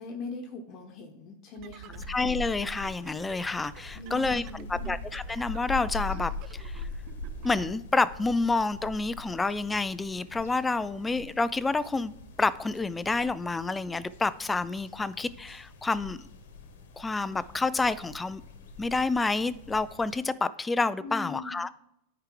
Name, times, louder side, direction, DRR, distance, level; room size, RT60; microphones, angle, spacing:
voice 1, 0.0-2.1 3.9-4.9 21.0-21.6, left 3 dB, 45° left, 1.0 m, -41 dB
sound 1, 1.6-7.7, right 11 dB, 45° right, 0.5 m, -49 dB
sound 2, 2.0-20.2, left 3 dB, 80° left, 1.1 m, -42 dB
voice 2, 2.1-4.4 4.7-6.9 7.4-12.1 12.4-16.3 17.0-18.4 18.8-21.7, left 3 dB, 10° left, 0.3 m, -29 dB
9.6 x 4.7 x 3.8 m
supercardioid pair, 125°, 0 cm